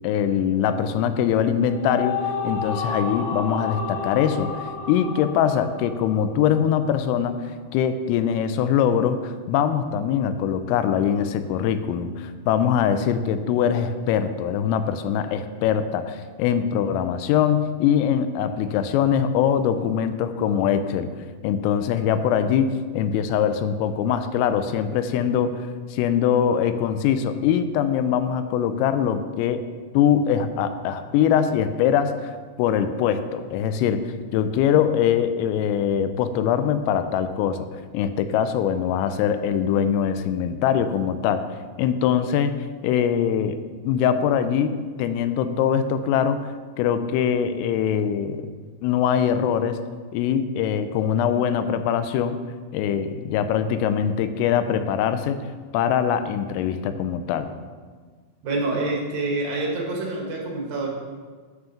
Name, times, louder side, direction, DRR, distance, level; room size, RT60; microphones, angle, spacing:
voice 1, 0.0-2.2 2.4-7.4 7.7-21.1 21.4-25.6 25.9-29.6 29.9-32.3 32.6-37.7 37.9-41.4 41.8-42.6 42.8-43.6 43.8-44.7 45.0-46.5 46.8-48.5 48.8-49.8 50.1-52.4 52.7-55.4 55.7-57.5, left 8 dB, 90° left, 10 dB, 3.3 m, -22 dB
sound 1, 1.6-6.9, left 5 dB, 70° left, 3.2 m, -31 dB
voice 2, 58.4-60.9, right 2 dB, 60° right, -2 dB, 2.6 m, -26 dB
9.3 x 7.1 x 5.8 m, 1.5 s
omnidirectional pair, 5.8 m